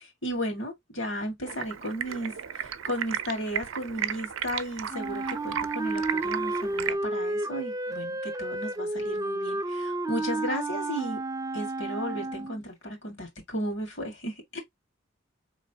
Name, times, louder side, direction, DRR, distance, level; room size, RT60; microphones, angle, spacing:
voice 1, 0.0-11.2 11.5-14.6, equal, 65° left, 1.8 m, -34 dB
Stream, 1.5-6.9, right 8 dB, 85° right, 0.5 m, -35 dB
Wind instrument woodwind instrument, 4.9-12.6, right 2 dB, 15° right, 0.4 m, -31 dB
4.4 x 3.2 x 2.7 m
head